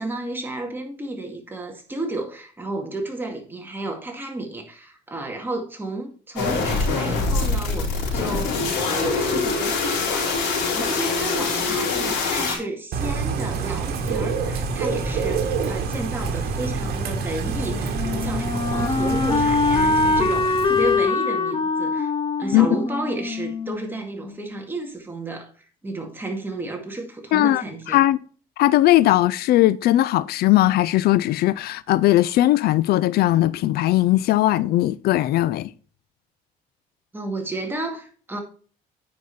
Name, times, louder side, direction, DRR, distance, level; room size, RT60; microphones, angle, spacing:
voice 1, 0.0-22.1 22.4-28.0 37.1-38.4, right 2 dB, 10° right, 2.1 m, -32 dB
sound 1, 6.4-12.6, left 4 dB, 85° left, 4.0 m, -24 dB
Bird / Rain, 12.9-21.1, right 4 dB, 65° right, 1.6 m, -27 dB
Wind instrument woodwind instrument, 17.5-24.4, left 3 dB, 30° left, 0.9 m, -23 dB
voice 2, 27.3-28.2 28.6-35.7, left 15 dB, 70° left, 0.4 m, -19 dB
9.5 x 5.3 x 4.3 m
cardioid pair, 110°, 17 cm